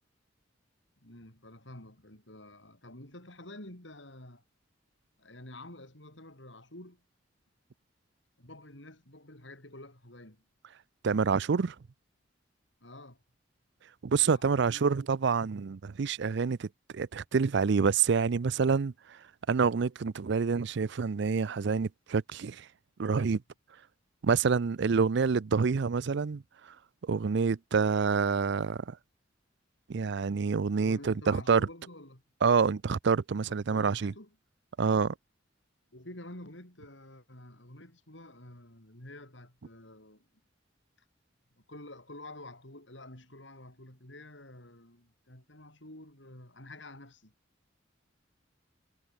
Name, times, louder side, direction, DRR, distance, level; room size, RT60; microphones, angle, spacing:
voice 1, 1.0-4.4 5.2-7.0 8.4-10.4 12.8-13.2 14.2-15.1 30.8-32.2 33.3-34.4 35.9-40.3 41.5-47.3, left 1 dB, 65° left, 7.2 m, -49 dB
voice 2, 11.0-11.7 14.0-16.7 16.9-18.9 19.5-22.7 23.0-23.4 24.2-26.4 27.0-29.0 29.9-31.6 32.4-34.1 34.8-35.1, right 5 dB, 60° right, 0.5 m, -27 dB
head